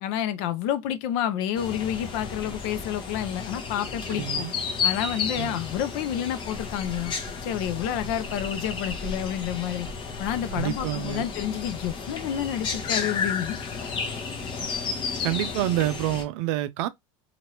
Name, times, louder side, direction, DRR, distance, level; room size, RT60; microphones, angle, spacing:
voice 1, 0.0-4.5 4.8-7.1 7.4-9.9 10.2-13.6, left 10 dB, 60° left, 0.6 m, -29 dB
sound 1, 1.5-16.2, left 5 dB, 30° left, 0.8 m, -32 dB
voice 2, 4.1-4.5 5.4-5.6 10.5-11.2 15.2-16.9, right 14 dB, 65° right, 0.5 m, -28 dB
sound 2, 5.5-12.9, right 1 dB, 30° right, 1.0 m, -44 dB
2.8 x 2.5 x 2.9 m
supercardioid pair, 135°, 17 cm